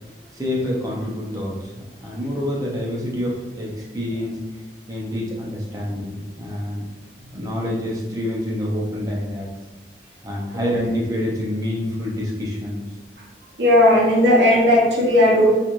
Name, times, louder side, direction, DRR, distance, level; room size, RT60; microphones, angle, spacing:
voice 1, 0.3-1.7 2.0-4.3 4.9-6.8 7.3-9.5 10.2-12.8, left 1 dB, 20° right, -4 dB, 0.6 m, -27 dB
voice 2, 10.5-10.9 13.6-15.5, left 1 dB, 70° right, -4 dB, 0.7 m, -16 dB
3.0 x 2.4 x 2.5 m, 1.1 s
head